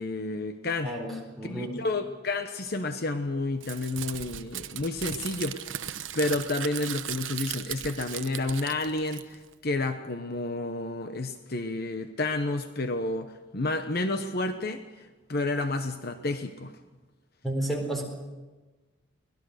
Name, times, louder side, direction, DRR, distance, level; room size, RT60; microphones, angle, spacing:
voice 1, 0.0-0.9 1.4-5.6 6.1-16.7, left 2 dB, 50° left, 8 dB, 1.0 m, -30 dB
voice 2, 0.8-1.8 17.4-18.0, right 1 dB, ahead, 2 dB, 4.1 m, -31 dB
Crumpling crinkling, 3.6-9.5, right 11 dB, 80° right, 1.1 m, -37 dB
24.5 x 19.0 x 6.6 m, 1.2 s
head